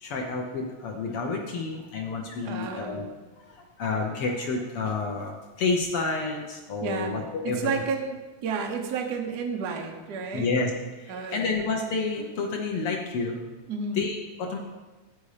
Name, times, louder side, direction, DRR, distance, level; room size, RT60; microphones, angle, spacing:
voice 1, 0.0-3.1 3.4-7.8 10.3-10.7 10.9-13.4 13.9-14.6, left 4 dB, 65° left, 1 dB, 1.6 m, -29 dB
voice 2, 2.4-3.1 6.8-7.1 7.4-10.5 11.1-11.4 13.7-14.0, right 5 dB, 80° right, 2 dB, 0.9 m, -31 dB
9.2 x 7.0 x 5.0 m, 1.2 s
omnidirectional pair, 3.4 m